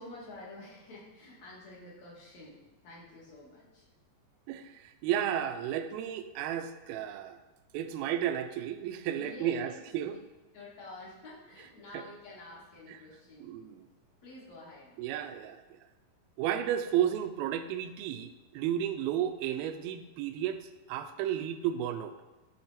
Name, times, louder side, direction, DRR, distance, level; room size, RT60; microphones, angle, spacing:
voice 1, 0.0-3.9 9.2-9.8 10.1-10.2 10.5-13.5 14.2-14.9, left 2 dB, 50° left, -5 dB, 3.1 m, -49 dB
voice 2, 4.5-7.4 7.7-10.1 13.4-13.8 15.0-15.6 16.4-20.6 20.9-22.2, right 10 dB, 80° right, 7 dB, 2.3 m, -32 dB
12.5 x 4.3 x 4.2 m, 1.1 s
omnidirectional pair, 4.6 m